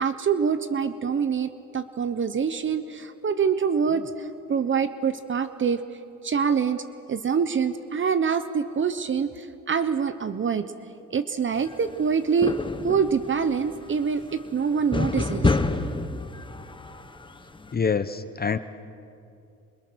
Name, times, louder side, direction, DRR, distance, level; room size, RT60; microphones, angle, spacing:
voice 1, 0.0-5.8 6.2-6.8 7.1-10.7 11.1-12.5 12.8-15.6, right 6 dB, 40° right, 11 dB, 1.0 m, -25 dB
sound 1, 11.6-12.1 12.4-17.7, left 3 dB, 15° left, 1.2 m, -29 dB
voice 2, 17.7-18.6, left 5 dB, 30° left, 12 dB, 0.9 m, -25 dB
29.0 x 26.5 x 6.4 m, 2.5 s
cardioid pair, 90°, 30 cm